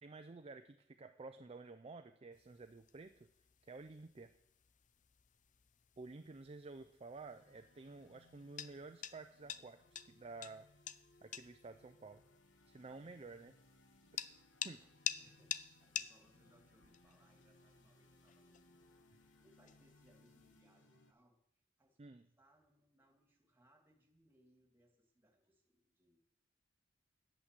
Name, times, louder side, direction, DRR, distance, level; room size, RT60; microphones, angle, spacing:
voice 1, 0.0-3.3 3.6-4.3 6.0-10.7 11.2-12.2 12.7-13.6 14.6-14.8 22.0-22.3, right 3 dB, 30° right, 8 dB, 0.5 m, -52 dB
sound 1, 2.3-20.6, left 9 dB, 45° left, 0.5 m, -50 dB
sound 2, 7.2-21.1, left 1 dB, 90° left, 1.4 m, -68 dB
voice 2, 15.2-18.9 19.1-21.4 21.8-26.2, equal, 10° right, 2 dB, 2.4 m, -72 dB
10.0 x 8.5 x 7.5 m, 0.75 s
head